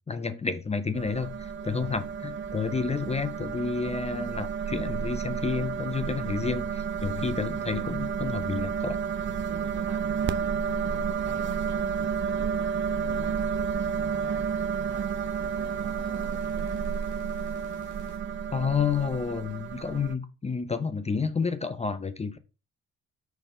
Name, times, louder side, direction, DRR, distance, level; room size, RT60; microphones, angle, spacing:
voice 1, 0.1-9.0 18.5-22.4, left 5 dB, 20° left, 0.6 m, -30 dB
sound 1, 0.9-20.1, right 7 dB, 40° right, 0.5 m, -31 dB
voice 2, 6.0-6.4 7.6-8.0 9.1-16.8, right 4 dB, 70° right, 2.3 m, -48 dB
sound 2, 10.5-18.2, left 2 dB, 90° left, 1.9 m, -58 dB
6.4 x 3.4 x 5.1 m
cardioid pair, 90°, 30 cm